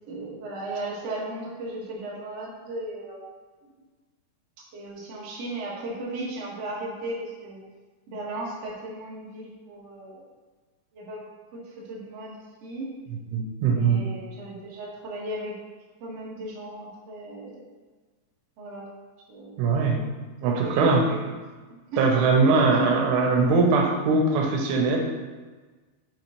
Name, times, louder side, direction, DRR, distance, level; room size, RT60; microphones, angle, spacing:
voice 1, 0.1-3.2 4.7-7.6 8.1-10.2 10.9-12.9 13.7-15.6 16.0-17.7 18.6-18.9 19.3-19.5 19.9-20.0 20.4-21.2 21.9-22.0 22.5-23.2, right 2 dB, 60° right, -6 dB, 1.7 m, -35 dB
voice 2, 13.3-14.0 19.6-20.0 20.4-21.0 22.0-25.0, right 4 dB, 90° right, 1 dB, 3.4 m, -21 dB
6.3 x 6.0 x 3.1 m, 1.3 s
omnidirectional pair, 5.4 m